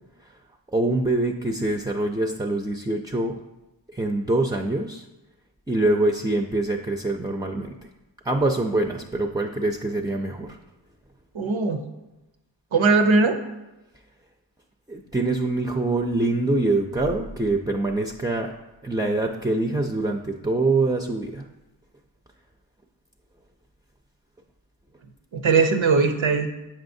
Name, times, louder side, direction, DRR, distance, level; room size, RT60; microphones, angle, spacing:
voice 1, 0.7-3.4 3.9-5.0 5.7-7.8 8.2-10.6 14.9-18.5 18.8-21.5, right 2 dB, 10° right, 2 dB, 0.3 m, -24 dB
voice 2, 11.3-11.8 12.7-13.4 25.3-26.5, right 4 dB, 90° right, 6 dB, 0.7 m, -19 dB
7.4 x 5.5 x 2.6 m, 1.0 s
wide cardioid pair, 55°, 45 cm